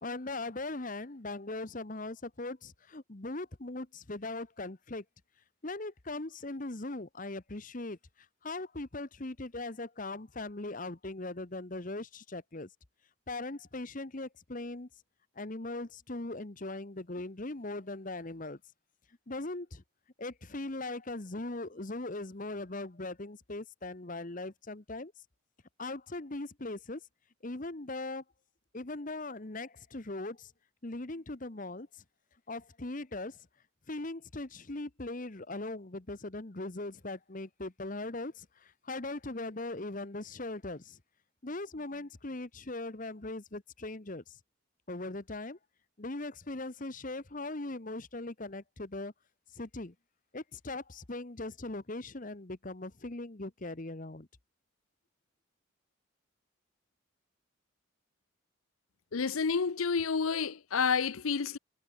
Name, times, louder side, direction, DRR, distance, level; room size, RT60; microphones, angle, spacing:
voice 1, 0.0-5.0 5.6-12.7 13.3-14.9 15.3-18.6 19.3-19.8 20.2-25.1 25.8-27.0 27.4-28.2 28.7-30.5 30.8-32.0 32.5-33.5 33.9-41.0 41.4-44.4 44.9-45.6 46.0-49.1 49.5-49.9 50.3-54.3, left 2 dB, 40° left, 1.1 m, -40 dB
voice 2, 59.1-61.6, left 5 dB, 80° left, 0.7 m, -29 dB
head